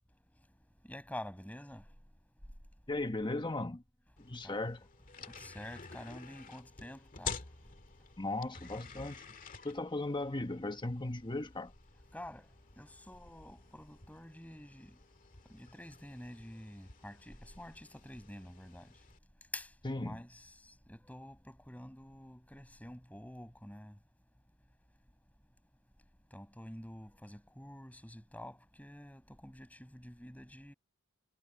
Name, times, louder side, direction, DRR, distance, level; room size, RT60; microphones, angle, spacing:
voice 1, 0.8-1.8 4.4-4.6 5.4-7.4 12.1-12.5 12.8-15.0 15.5-18.9 19.5-19.7 20.0-20.5 20.9-24.0 26.3-30.7, left 1 dB, 5° left, 7.0 m, -48 dB
voice 2, 2.9-3.8 4.2-4.8 8.2-9.2 9.6-11.7 19.8-20.2, left 2 dB, 25° left, 1.2 m, -37 dB
sound 1, 4.2-19.2, left 5 dB, 40° left, 1.9 m, -50 dB
head